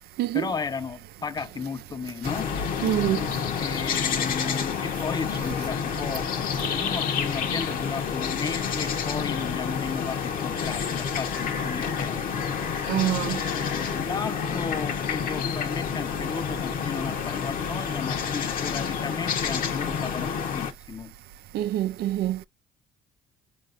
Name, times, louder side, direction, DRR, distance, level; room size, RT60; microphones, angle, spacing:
voice 1, 0.3-2.6 3.6-12.2 13.6-21.1, left 5 dB, 25° left, 0.7 m, -35 dB
sound 1, 2.2-20.7, left 7 dB, 55° left, 1.0 m, -29 dB
voice 2, 2.8-3.2 12.9-13.4 21.5-22.4, right 13 dB, 70° right, 0.5 m, -25 dB
4.6 x 3.0 x 2.5 m
cardioid pair, 110°, 17 cm